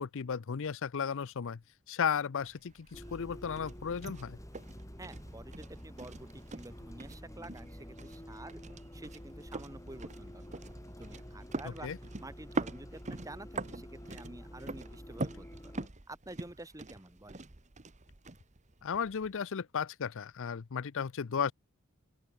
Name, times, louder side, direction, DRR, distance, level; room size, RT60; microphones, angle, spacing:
voice 1, 0.0-1.6 1.9-4.4 11.8-12.0 18.8-21.5, left 6 dB, 60° left, 0.5 m, -34 dB
sound 1, 2.4-19.4, right 2 dB, 35° right, 1.2 m, -44 dB
Bus, 2.9-15.9, equal, 15° left, 7.4 m, -49 dB
voice 2, 5.0-10.6 11.0-11.9 12.2-15.7 16.1-17.4, right 1 dB, 15° right, 2.0 m, -49 dB
open air
head